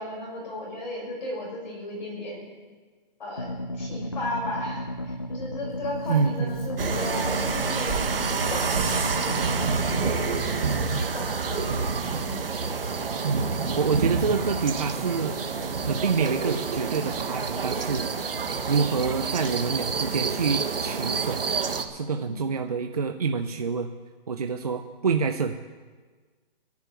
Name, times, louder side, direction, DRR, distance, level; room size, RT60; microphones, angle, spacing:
voice 1, 0.0-2.6 3.2-8.0 8.5-9.1 10.0-11.9 12.2-12.4 22.1-22.3, left 1 dB, 50° left, -3 dB, 5.6 m, -35 dB
sound 1, 3.4-10.1, left 1 dB, 30° left, 0.5 m, -34 dB
Rattle, 5.0-11.0, right 3 dB, 5° left, 1.5 m, -43 dB
voice 2, 6.1-6.8 10.6-11.1 13.2-15.5 15.9-18.1 18.7-21.4 21.9-23.9 24.3-25.5, right 5 dB, 40° right, 6 dB, 0.7 m, -27 dB
sound 2, 6.8-21.8, right 5 dB, 75° right, 1.7 m, -28 dB
11.0 x 9.5 x 9.1 m, 1.4 s
hypercardioid pair, 180°, 29 cm